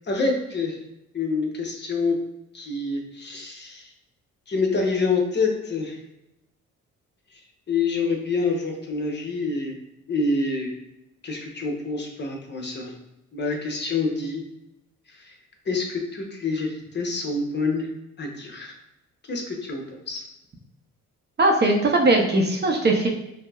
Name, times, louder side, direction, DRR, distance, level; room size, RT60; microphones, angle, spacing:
voice 1, 0.1-0.8 1.1-2.2 2.5-3.9 4.5-6.0 7.7-9.7 10.1-10.7 11.2-12.9 13.3-14.4 15.2-15.3 15.7-17.9 18.2-18.7 19.3-20.2, left 3 dB, 35° left, 1 dB, 0.8 m, -27 dB
voice 2, 21.4-23.1, right 2 dB, 35° right, 2 dB, 0.6 m, -19 dB
5.2 x 2.0 x 2.3 m, 0.87 s
cardioid pair, 90°, 30 cm